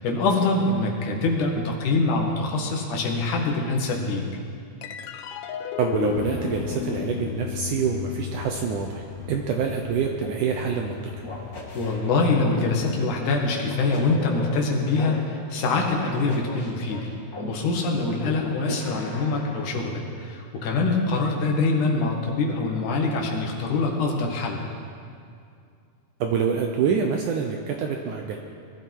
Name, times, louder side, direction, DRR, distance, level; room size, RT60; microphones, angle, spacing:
voice 1, 0.0-4.2 11.7-17.1 17.5-24.6, left 3 dB, 60° left, 0 dB, 2.9 m, -24 dB
sound 1, 4.8-11.5, left 11 dB, 80° left, 2.5 m, -35 dB
voice 2, 5.8-11.1 18.2-18.3 26.2-28.4, right 6 dB, 75° right, 3 dB, 2.0 m, -26 dB
Truck, 6.0-11.6, left 6 dB, 35° right, 5.2 m, -37 dB
sound 2, 10.2-10.4 11.2-12.8 13.6-15.1 16.0-17.5 18.4-19.7, left 2 dB, 30° left, 2.0 m, -37 dB
22.0 x 12.5 x 4.7 m, 2.4 s
omnidirectional pair, 4.4 m